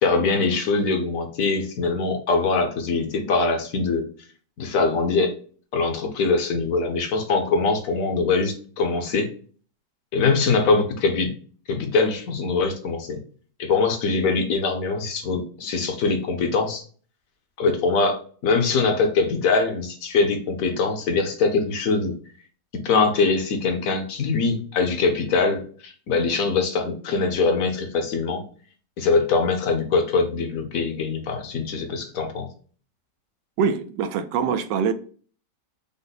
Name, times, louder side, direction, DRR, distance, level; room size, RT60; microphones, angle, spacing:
voice 1, 0.0-4.0 4.6-5.3 5.7-9.3 10.1-11.3 11.7-13.2 13.6-16.8 17.6-22.1 22.7-28.4 29.0-32.5, left 4 dB, 60° left, 1.1 m, -23 dB
voice 2, 33.6-34.9, right 6 dB, 90° right, 1.2 m, -23 dB
5.2 x 2.1 x 3.9 m
omnidirectional pair, 1.8 m